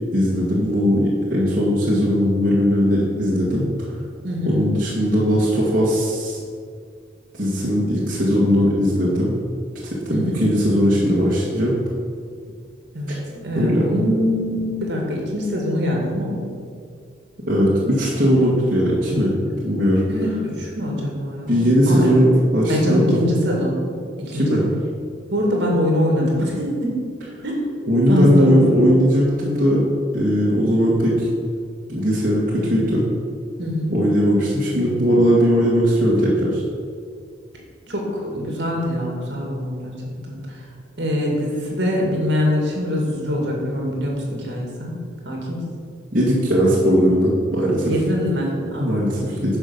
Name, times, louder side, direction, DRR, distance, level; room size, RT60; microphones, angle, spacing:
voice 1, 0.1-3.9 4.4-6.4 7.3-9.4 9.8-11.7 13.5-13.9 17.5-19.3 19.6-20.0 21.5-23.2 24.3-24.6 27.9-29.8 30.1-31.3 31.9-33.1 33.9-36.6 46.1-47.9 48.8-49.6, equal, 45° right, -7 dB, 1.8 m, -18 dB
voice 2, 4.2-4.7 10.1-10.4 12.9-16.4 20.1-22.2 22.7-23.8 24.2-24.6 25.3-26.9 27.4-27.6 28.1-28.9 33.6-34.0 37.9-39.9 40.3-40.6 41.0-45.6 47.8-48.9 49.3-49.4, left 1 dB, 60° right, -1 dB, 2.4 m, -23 dB
10.5 x 5.3 x 6.9 m, 2.2 s
head